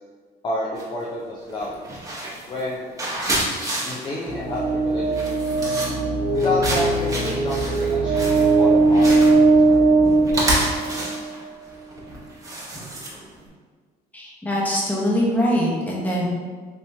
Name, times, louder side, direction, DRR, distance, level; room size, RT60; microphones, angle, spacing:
voice 1, 0.4-1.8 2.5-2.9 3.9-5.4 6.3-9.8, left 2 dB, 25° left, -4 dB, 0.4 m, -30 dB
sound 1, 0.8-1.1 1.5-13.5, right 1 dB, 20° right, 0.9 m, -29 dB
sound 2, 4.3-11.2, right 3 dB, 60° right, 1.2 m, -19 dB
voice 2, 14.1-16.3, equal, 10° left, -4 dB, 0.9 m, -22 dB
3.5 x 2.9 x 2.7 m, 1.5 s
cardioid pair, 110°, 17 cm